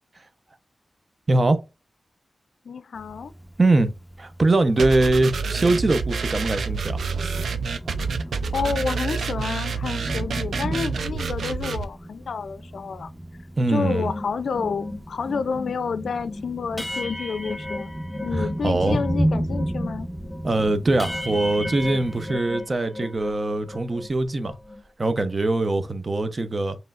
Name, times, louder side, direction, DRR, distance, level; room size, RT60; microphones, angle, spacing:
voice 1, 1.3-1.6 3.6-7.0 13.6-14.1 18.4-19.0 20.4-24.6 25.0-26.8, right 2 dB, 45° right, 0.6 m, -22 dB
voice 2, 2.7-3.3 8.5-13.1 13.7-17.9 18.2-20.1, left 5 dB, 85° left, 0.3 m, -29 dB
Thunder, 3.0-22.3, right 1 dB, ahead, 0.7 m, -34 dB
sound 1, 4.8-11.8, right 5 dB, 90° right, 0.4 m, -28 dB
sound 2, 13.8-19.2 19.5-23.4 23.7-24.8, left 1 dB, 25° left, 1.0 m, -36 dB
5.3 x 3.1 x 2.3 m
cardioid pair, 55°, 0 cm